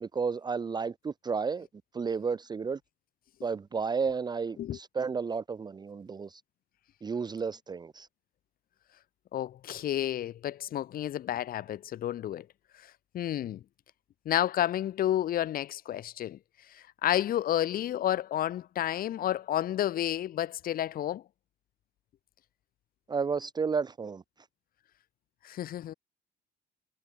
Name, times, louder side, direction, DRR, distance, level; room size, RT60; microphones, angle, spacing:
voice 1, 0.0-1.7 1.9-2.8 3.4-6.4 7.0-8.1 23.1-24.2, right 5 dB, 25° right, 0.8 m, -32 dB
voice 2, 9.3-12.5 12.8-12.9 13.1-13.6 14.3-16.4 16.7-21.2 25.4-25.9, left 12 dB, 60° left, 2.0 m, -30 dB
cardioid pair, 110°, 17 cm